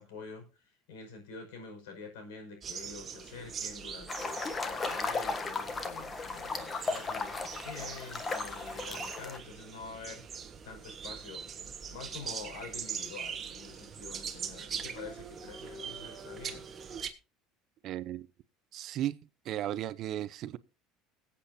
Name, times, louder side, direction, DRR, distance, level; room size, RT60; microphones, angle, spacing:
voice 1, 0.0-10.2 10.6-11.5 11.9-16.7, left 5 dB, 90° left, 5.5 m, -47 dB
sound 1, 2.6-17.1, right 7 dB, 30° right, 1.4 m, -42 dB
sound 2, 4.1-9.4, left 4 dB, 25° left, 1.4 m, -36 dB
voice 2, 17.8-18.3 18.7-19.2 19.4-20.6, right 12 dB, 50° right, 0.7 m, -35 dB
21.5 x 8.5 x 2.8 m
supercardioid pair, 130°, 0 cm